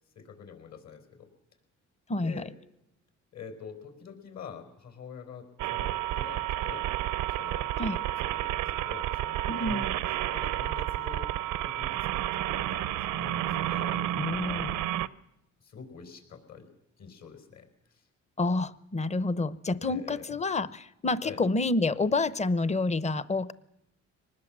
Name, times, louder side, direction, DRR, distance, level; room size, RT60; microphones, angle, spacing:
voice 1, 0.1-1.3 2.2-2.5 3.3-6.9 7.4-10.0 10.3-11.3 11.6-14.6 15.6-16.7 17.0-17.7 19.8-20.4 21.2-21.4, left 6 dB, 60° left, 6 dB, 5.0 m, -46 dB
voice 2, 2.1-2.4 7.8-8.0 9.5-9.9 14.2-14.8 18.4-23.5, left 3 dB, 20° left, 16 dB, 0.9 m, -28 dB
sound 1, 5.6-15.1, right 13 dB, 80° right, 0.8 m, -31 dB
24.5 x 19.5 x 7.5 m, 0.81 s
cardioid pair, 90°, 30 cm